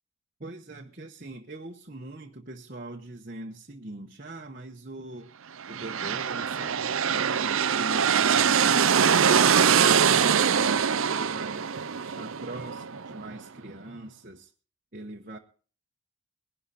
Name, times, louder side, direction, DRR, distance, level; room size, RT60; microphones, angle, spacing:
voice 1, 0.4-5.4 5.7-14.5 14.9-15.4, right 2 dB, 40° right, 1.1 m, -41 dB
sound 1, 5.6-13.3, right 7 dB, 70° right, 0.6 m, -23 dB
21.0 x 11.5 x 4.2 m
head